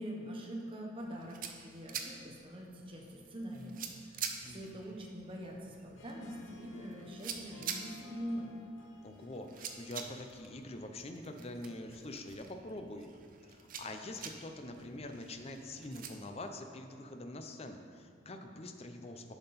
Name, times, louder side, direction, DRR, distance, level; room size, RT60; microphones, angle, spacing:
voice 1, 0.0-8.5, equal, 25° right, -1 dB, 0.9 m, -44 dB
sound 1, 1.0-16.1, right 7 dB, 45° right, 0.6 m, -47 dB
Harp, 5.9-11.3, left 4 dB, 70° left, 0.9 m, -58 dB
voice 2, 9.0-13.1 13.5-19.4, left 1 dB, 30° left, 5 dB, 0.6 m, -45 dB
10.5 x 5.8 x 4.2 m, 2.2 s
head